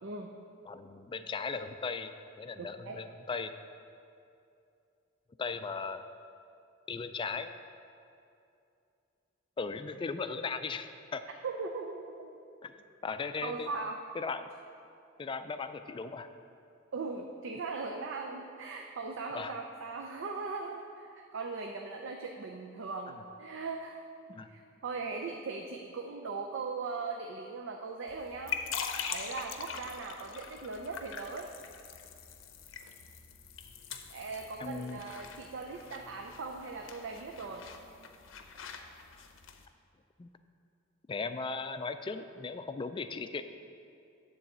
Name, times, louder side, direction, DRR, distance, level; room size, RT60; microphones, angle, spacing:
voice 1, 0.0-0.3 2.6-3.0 11.4-12.3 13.4-14.1 16.9-24.0 24.5-28.6 29.1-31.5 34.1-37.6, right 4 dB, 65° right, 2 dB, 0.5 m, -39 dB
voice 2, 0.7-2.1 2.4-3.5 5.4-6.0 6.9-7.5 9.6-11.2 12.6-12.7 13.0-13.7 14.1-14.5 15.2-16.3 19.3-19.5 24.3-24.5 34.6-35.0 40.2-40.3 41.1-43.4, left 4 dB, 25° left, 9 dB, 0.3 m, -37 dB
sound 1, 28.1-39.7, left 6 dB, 70° left, 0.6 m, -43 dB
9.5 x 4.0 x 7.3 m, 2.6 s
head